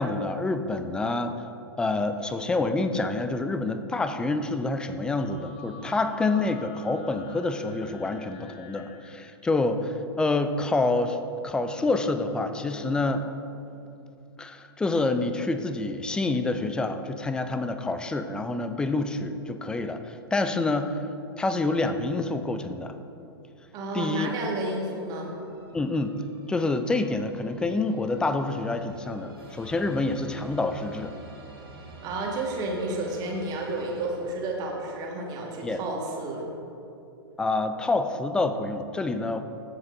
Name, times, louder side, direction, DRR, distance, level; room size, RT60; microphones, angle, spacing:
voice 1, 0.0-1.3 1.8-11.2 11.4-13.2 14.4-21.0 21.4-23.0 23.9-24.3 25.7-26.2 26.5-31.2 35.6-35.8 37.4-39.4, left 2 dB, 5° left, 9 dB, 0.4 m, -27 dB
sound 1, 5.1-9.4 11.4-13.3, left 6 dB, 35° left, 0.7 m, -47 dB
voice 2, 23.7-25.3 32.0-36.5, right 2 dB, 30° right, -1 dB, 1.6 m, -31 dB
sound 2, 25.2-34.7, right 2 dB, 70° right, 2.0 m, -49 dB
14.5 x 7.5 x 2.6 m, 2.9 s
figure-of-eight pair, 105°, 13 cm